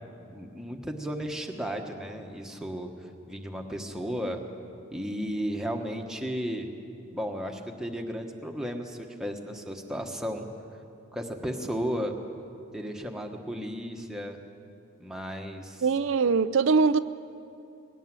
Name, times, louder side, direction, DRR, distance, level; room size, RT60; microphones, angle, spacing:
voice 1, 0.2-2.9 3.3-4.4 4.9-6.7 7.1-10.5 11.1-12.1 12.7-14.4 15.0-15.8, equal, 5° right, 2 dB, 1.3 m, -34 dB
voice 2, 15.8-17.0, right 5 dB, 70° right, 12 dB, 0.4 m, -22 dB
20.0 x 17.5 x 7.6 m, 2.5 s
head